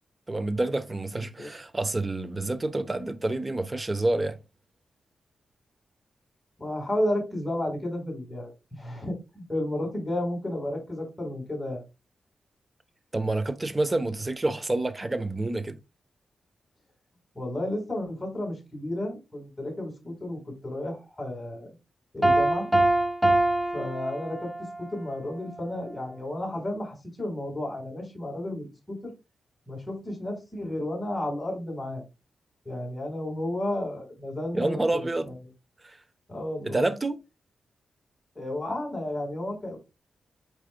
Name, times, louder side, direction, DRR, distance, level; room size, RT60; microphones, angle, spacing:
voice 1, 0.3-4.4 13.1-15.8 34.5-35.3 35.8-36.0 36.6-37.2, right 2 dB, 20° right, 0.9 m, -28 dB
voice 2, 1.1-1.5 6.6-11.8 17.3-21.7 22.1-22.7 23.7-29.1 29.7-32.0 32.7-35.3 36.3-36.9 38.4-39.8, left 1 dB, 20° left, 3.9 m, -32 dB
Piano, 22.2-24.8, right 1 dB, 5° right, 1.6 m, -24 dB
8.6 x 4.9 x 2.2 m
wide cardioid pair, 105°, 0 cm